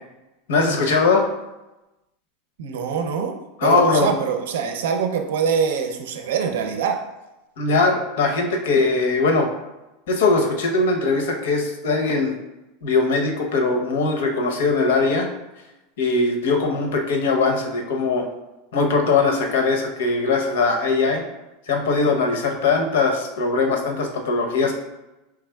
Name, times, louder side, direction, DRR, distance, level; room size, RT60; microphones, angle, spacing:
voice 1, 0.5-1.2 3.6-4.1 7.6-9.5 10.1-12.4 12.8-15.3 16.0-18.3 18.7-21.2 21.7-24.7, left 3 dB, 85° left, 3 dB, 0.8 m, -20 dB
voice 2, 2.6-3.4 3.6-7.0, right 6 dB, 85° right, 5 dB, 0.6 m, -24 dB
4.8 x 3.4 x 2.3 m, 0.99 s
supercardioid pair, 155°, 0 cm